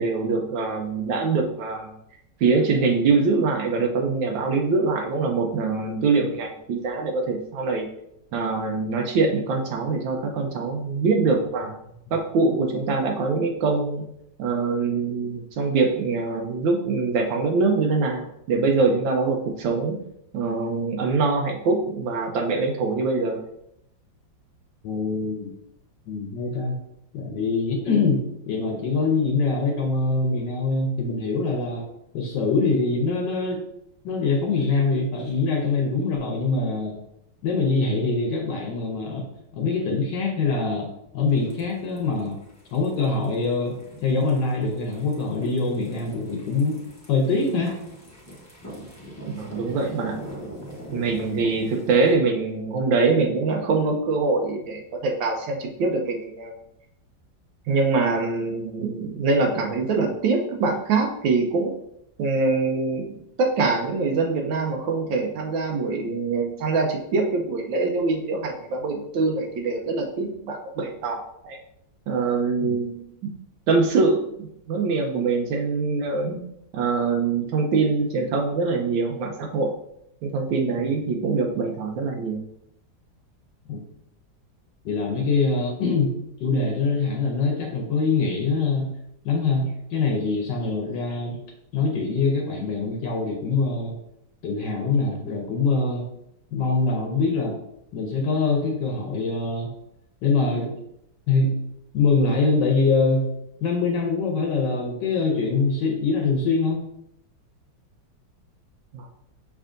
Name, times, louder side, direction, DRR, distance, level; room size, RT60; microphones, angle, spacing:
voice 1, 0.0-1.9 2.4-7.9 8.3-11.7 12.1-14.0 14.4-20.0 20.3-23.4 49.3-50.2 50.9-56.5 57.7-61.7 62.2-63.1 63.4-71.6 72.1-73.0 73.7-76.4 76.7-79.7 80.2-82.4 108.9-109.1, right 4 dB, 85° right, 2 dB, 1.4 m, -24 dB
voice 2, 24.8-25.5 26.1-26.8 27.1-31.9 32.1-33.6 34.0-37.0 37.4-39.3 39.5-40.9 41.1-42.4 42.7-46.8 47.1-47.7 72.6-72.8 83.7-83.8 84.8-86.1 86.4-88.9 89.2-91.4 91.7-93.9 94.4-96.1 96.5-97.6 97.9-99.7 100.2-100.8 101.3-101.5 101.9-103.3 103.6-106.8, left 4 dB, 75° left, 1 dB, 1.3 m, -24 dB
sound 1, 41.3-52.1, equal, 20° left, 0.5 m, -43 dB
5.7 x 3.6 x 2.5 m, 0.77 s
omnidirectional pair, 2.0 m